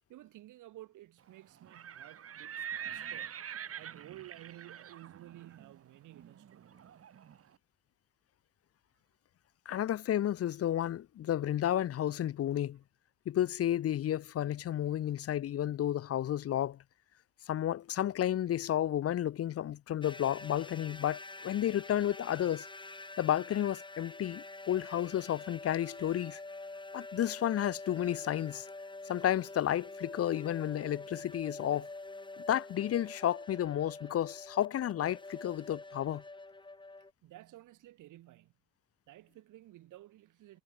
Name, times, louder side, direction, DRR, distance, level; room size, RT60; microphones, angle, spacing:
voice 1, 0.0-3.4 3.7-6.7 37.2-38.5 39.1-40.6, right 15 dB, 85° right, 2.8 m, -53 dB
Livestock farm animals working animals, 1.6-7.4, right 9 dB, 50° right, 1.5 m, -45 dB
voice 2, 9.7-12.8 13.3-16.8 17.5-22.7 23.2-26.4 26.9-28.7 29.1-31.9 32.5-36.2, left 11 dB, 50° left, 0.6 m, -32 dB
sound 1, 20.0-37.1, left 2 dB, 15° left, 2.8 m, -47 dB
cardioid pair, 90°, 30 cm